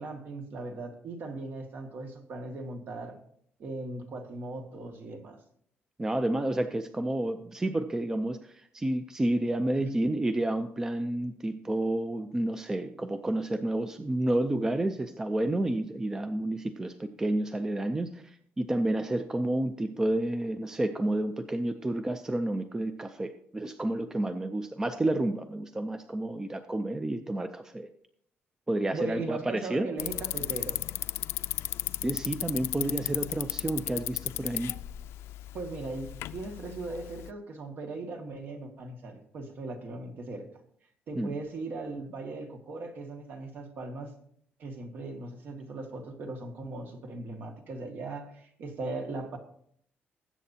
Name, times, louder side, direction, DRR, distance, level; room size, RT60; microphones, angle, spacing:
voice 1, 0.0-3.2 3.6-5.4 9.8-10.0 28.9-30.8 35.5-40.5 41.1-44.1 44.6-49.4, right 3 dB, 50° right, 4 dB, 1.9 m, -38 dB
voice 2, 6.0-27.9 28.7-29.9 32.0-34.7 41.2-41.3, right 1 dB, 15° right, 9 dB, 0.5 m, -30 dB
Bicycle, 30.0-37.3, left 14 dB, 90° left, 0.4 m, -35 dB
20.0 x 8.3 x 2.8 m, 0.65 s
cardioid pair, 160°, 4 cm